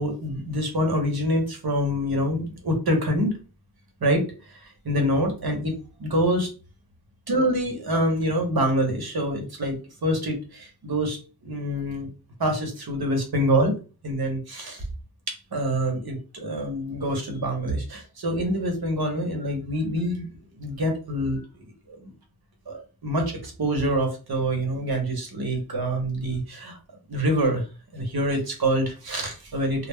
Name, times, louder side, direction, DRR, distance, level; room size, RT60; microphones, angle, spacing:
voice 1, 0.0-3.4 4.0-5.7 6.0-6.5 7.3-9.8 10.0-12.1 12.4-13.7 14.0-14.8 15.3-20.3 20.6-22.1 22.7-26.8 27.1-27.6 27.9-29.9, equal, 65° right, 3 dB, 0.9 m, -26 dB
2.1 x 2.0 x 3.4 m, 0.34 s
wide cardioid pair, 65°, 41 cm